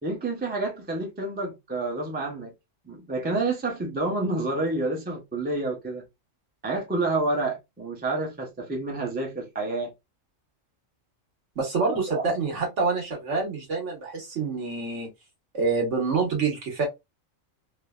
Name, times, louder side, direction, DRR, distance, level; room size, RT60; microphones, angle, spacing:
voice 1, 0.0-2.5 2.8-6.0 6.6-9.9 11.9-12.2, right 2 dB, 10° right, 0.4 m, -29 dB
voice 2, 11.5-15.1 15.5-16.9, right 4 dB, 60° right, 1.4 m, -27 dB
3.2 x 2.1 x 2.3 m
omnidirectional pair, 1.4 m